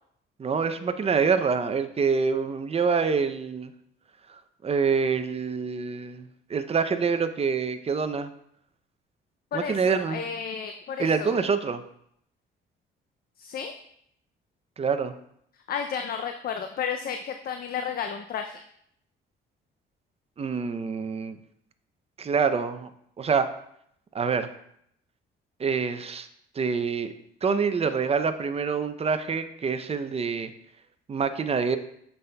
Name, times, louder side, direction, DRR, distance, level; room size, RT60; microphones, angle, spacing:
voice 1, 0.4-3.7 4.6-6.2 6.5-8.3 9.5-10.2 11.0-11.8 14.8-15.1 20.4-21.4 22.2-22.9 23.2-23.5 24.1-24.5 25.6-26.3 26.6-27.1 27.4-30.5 31.1-31.8, right 5 dB, 30° right, 10 dB, 0.5 m, -26 dB
voice 2, 9.5-11.4 13.4-13.7 15.7-18.6, left 7 dB, 50° left, 6 dB, 0.4 m, -32 dB
7.9 x 5.5 x 2.2 m, 0.72 s
cardioid pair, 90°, 20 cm